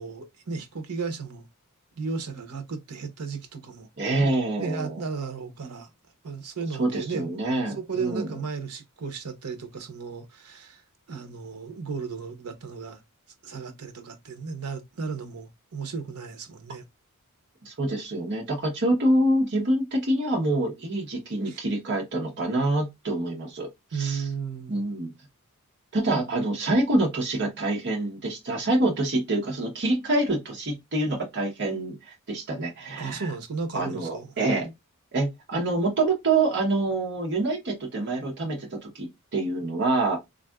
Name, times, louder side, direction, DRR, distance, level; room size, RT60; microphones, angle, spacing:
voice 1, 0.0-1.5 2.0-3.9 4.6-5.9 6.2-7.4 7.8-10.8 11.1-13.0 13.4-16.8 21.5-21.6 23.9-24.8 26.1-26.2 33.0-34.7, right 5 dB, 85° right, 0.7 m, -34 dB
voice 2, 4.0-5.0 6.8-8.3 17.6-24.3 24.7-25.1 25.9-33.3 33.7-34.7 35.1-40.2, right 2 dB, 55° right, 0.9 m, -26 dB
3.4 x 2.5 x 2.2 m
head